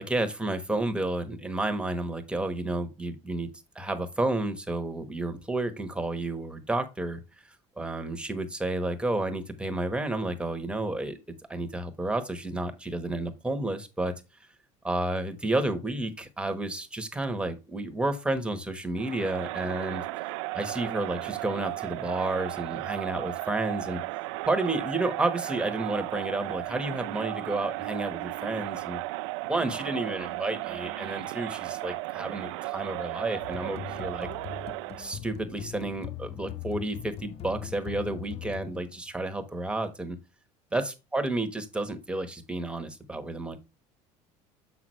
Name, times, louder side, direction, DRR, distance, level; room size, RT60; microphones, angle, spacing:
voice 1, 0.0-3.5 3.7-7.2 7.8-11.2 11.5-14.1 14.8-20.0 20.5-24.0 24.4-29.0 29.5-34.3 35.0-40.2 40.7-43.6, right 2 dB, 5° right, 7 dB, 1.3 m, -31 dB
Crowd, 19.0-35.2, right 20 dB, 85° right, 0.5 m, -35 dB
sound 1, 33.4-39.1, left 10 dB, 45° left, 0.6 m, -40 dB
7.2 x 6.0 x 3.2 m, 0.25 s
supercardioid pair, 110°, 15 cm